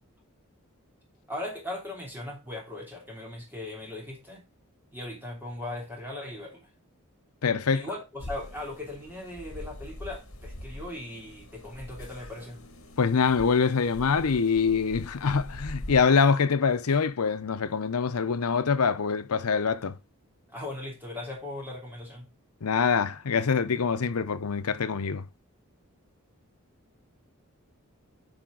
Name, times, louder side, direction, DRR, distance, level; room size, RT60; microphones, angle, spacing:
voice 1, 1.3-4.4 4.9-6.7 7.7-12.6 20.5-22.3, left 1 dB, 10° right, 3.1 m, -38 dB
voice 2, 7.4-7.8 13.0-20.0 22.6-25.2, left 5 dB, 85° left, 0.7 m, -24 dB
sound 1, 8.2-16.0, left 1 dB, 70° left, 2.0 m, -43 dB
8.9 x 5.1 x 3.9 m
head